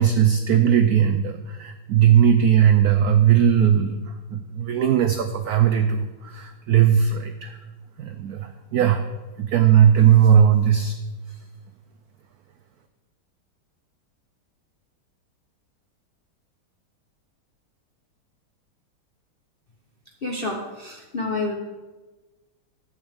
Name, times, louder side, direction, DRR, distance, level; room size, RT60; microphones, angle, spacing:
voice 1, 0.0-7.6 8.0-9.1 9.4-10.9, right 9 dB, 85° right, 7 dB, 0.8 m, -18 dB
voice 2, 20.2-21.5, left 3 dB, 50° left, 0 dB, 0.6 m, -28 dB
12.0 x 8.8 x 3.6 m, 1.2 s
omnidirectional pair, 2.2 m